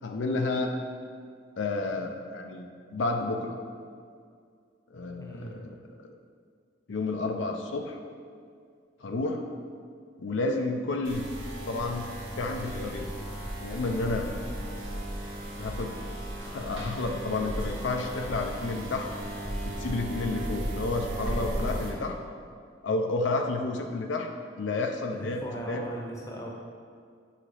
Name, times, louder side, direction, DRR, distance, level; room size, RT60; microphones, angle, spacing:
voice 1, 0.0-0.7 1.6-2.6 2.9-3.5 4.9-6.1 6.9-8.0 9.0-9.4 10.2-11.3 11.7-12.1 12.4-13.1 13.6-14.3 15.6-16.0 16.5-19.1 19.6-22.2 22.8-24.3 24.6-25.8, left 3 dB, 80° left, 3 dB, 0.5 m, -31 dB
voice 2, 5.2-5.7 25.1-26.5, right 1 dB, 15° left, -2 dB, 0.8 m, -38 dB
sound 1, 11.1-21.9, right 1 dB, 85° right, 1.7 m, -35 dB
8.5 x 4.8 x 3.3 m, 2.2 s
head